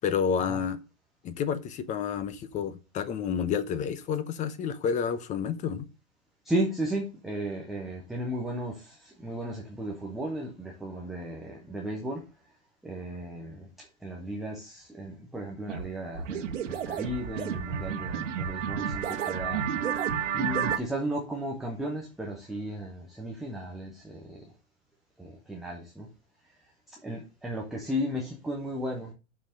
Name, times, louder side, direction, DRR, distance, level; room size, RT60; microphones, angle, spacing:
voice 1, 0.0-0.8 1.2-5.9, left 7 dB, 20° left, 0.9 m, -30 dB
voice 2, 6.4-12.3 12.8-20.0 20.3-24.5 25.2-26.1 26.9-29.1, right 1 dB, ahead, 0.3 m, -35 dB
sound 1, 15.7-15.9 16.1-20.8, right 8 dB, 65° right, 1.4 m, -31 dB
7.2 x 5.6 x 6.4 m
hypercardioid pair, 130°, 40 cm